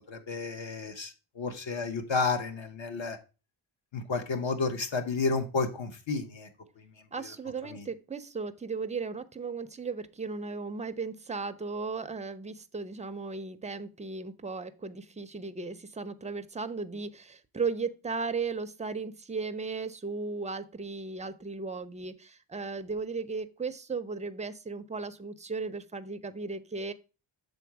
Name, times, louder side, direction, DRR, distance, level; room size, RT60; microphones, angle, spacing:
voice 1, 0.1-3.2 3.9-6.5 7.2-7.3 7.7-7.8, left 4 dB, 65° left, 6 dB, 1.0 m, -31 dB
voice 2, 7.1-26.9, right 4 dB, 15° right, 10 dB, 0.4 m, -36 dB
7.0 x 3.9 x 4.6 m, 0.31 s
wide cardioid pair, 145°, 49 cm